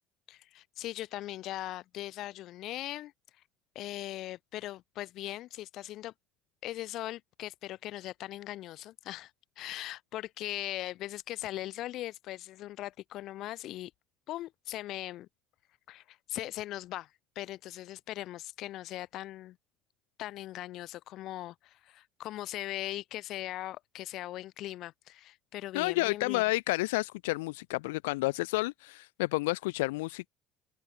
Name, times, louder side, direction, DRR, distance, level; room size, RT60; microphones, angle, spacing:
voice 1, 0.3-3.1 3.7-6.1 6.6-9.3 9.6-13.9 14.3-15.3 15.9-19.6 20.2-26.4, left 15 dB, 65° left, 1.1 m, -40 dB
voice 2, 25.7-30.3, left 22 dB, 80° left, 0.8 m, -30 dB
open air
hypercardioid pair, 65°, 0 cm